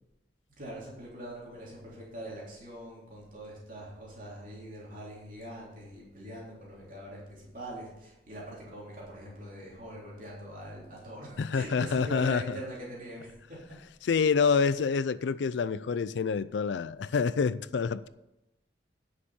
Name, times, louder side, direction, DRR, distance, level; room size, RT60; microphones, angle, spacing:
voice 1, 0.6-13.6 14.4-14.7, right 1 dB, 50° right, 3.4 m, -43 dB
voice 2, 11.4-12.6 14.0-18.1, left 5 dB, 85° left, 0.4 m, -27 dB
10.0 x 6.5 x 5.5 m
head